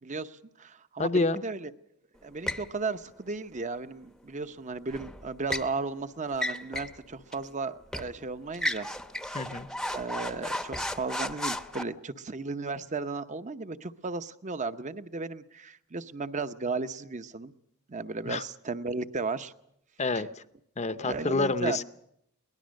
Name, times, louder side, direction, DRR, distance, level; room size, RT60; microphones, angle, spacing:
voice 1, 0.0-1.7 2.2-8.9 9.2-9.3 9.9-17.5 17.9-19.5 21.0-21.8, right 3 dB, 35° right, 11 dB, 0.8 m, -35 dB
voice 2, 1.0-1.4 9.3-9.7 18.2-18.4 20.0-20.4 20.8-21.8, left 3 dB, 30° left, 13 dB, 0.7 m, -28 dB
sound 1, 2.5-2.7 4.9-5.7 6.3-7.0 7.3-7.4 7.9-8.1 8.5-11.8, left 1 dB, ahead, 0.8 m, -34 dB
23.0 x 19.0 x 6.4 m, 0.75 s
head